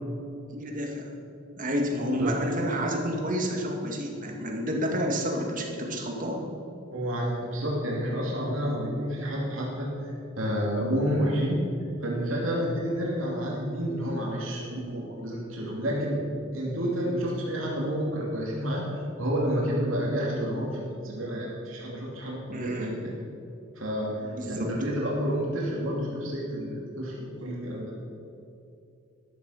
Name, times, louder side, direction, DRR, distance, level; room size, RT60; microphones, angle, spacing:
voice 1, 0.5-1.1 1.6-6.4 22.5-23.0 24.2-24.7, equal, 40° right, 1 dB, 2.0 m, -30 dB
voice 2, 6.9-11.6 12.0-16.2 16.5-23.1 23.8-26.7 27.0-27.9, equal, 75° right, -3 dB, 2.7 m, -30 dB
13.0 x 11.5 x 5.7 m, 2.7 s
head